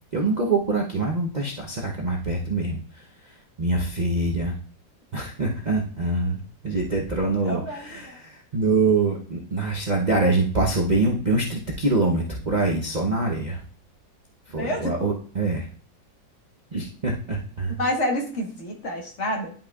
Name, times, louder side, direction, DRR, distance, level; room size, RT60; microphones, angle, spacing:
voice 1, 0.1-4.5 5.1-13.6 14.5-15.7 16.7-17.8, right 3 dB, 85° right, -2 dB, 0.3 m, -25 dB
voice 2, 7.4-8.2 14.6-14.9 17.8-19.5, left 1 dB, 45° left, 1 dB, 1.4 m, -28 dB
10.0 x 5.4 x 2.3 m, 0.44 s
omnidirectional pair, 2.0 m